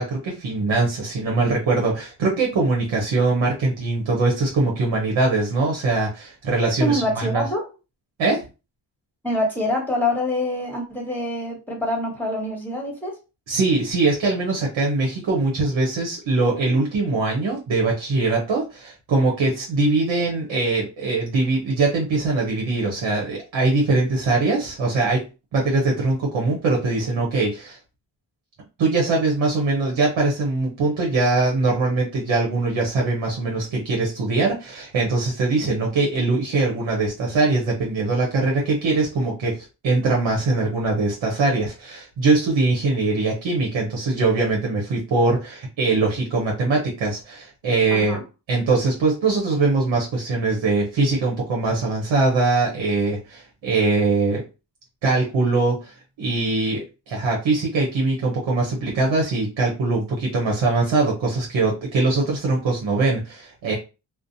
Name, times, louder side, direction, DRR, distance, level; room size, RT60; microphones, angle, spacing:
voice 1, 0.0-7.4 8.2-8.4 13.5-25.2 25.5-27.8 28.8-48.2 48.5-54.4 55.0-63.7, right 3 dB, 75° right, 0.8 m, -22 dB
voice 2, 6.8-7.6 9.2-13.2 35.6-35.9 47.9-48.2, left 1 dB, 5° left, 1.2 m, -25 dB
2.4 x 2.0 x 2.6 m
cardioid pair, 55°, 45 cm